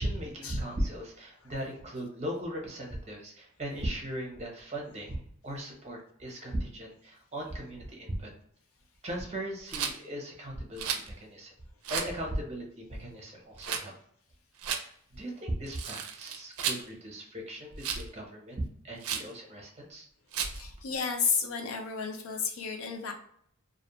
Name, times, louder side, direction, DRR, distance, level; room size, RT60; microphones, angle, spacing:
voice 1, 0.0-8.3 9.0-11.5 11.9-14.0 15.1-20.1, right 1 dB, 30° right, 0 dB, 0.7 m, -37 dB
Rattle, 9.7-10.0 10.8-11.1 11.8-12.1 13.6-13.8 14.6-14.8 15.7-16.8 17.8-18.1 19.0-19.3 20.3-20.6, right 7 dB, 85° right, 0.4 m, -33 dB
voice 2, 20.5-23.1, left 6 dB, 75° left, 4 dB, 0.5 m, -32 dB
2.5 x 2.0 x 2.9 m, 0.65 s
head